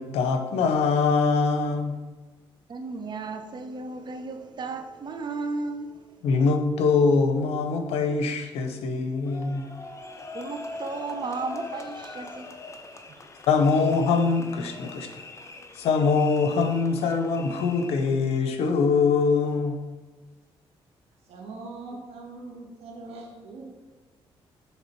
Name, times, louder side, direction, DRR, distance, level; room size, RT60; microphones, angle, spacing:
voice 1, 0.0-2.0 6.2-9.7 13.5-15.1 15.7-19.8, left 4 dB, 85° left, 0.7 m, -23 dB
voice 2, 2.7-6.2 10.3-12.8 13.1-13.2, right 3 dB, 45° right, 0.7 m, -34 dB
sound 1, 9.2-18.2, left 3 dB, 30° left, 0.7 m, -42 dB
voice 3, 21.3-23.8, right 3 dB, 80° right, 1.5 m, -41 dB
7.3 x 3.3 x 4.5 m
cardioid pair, 80°, 10 cm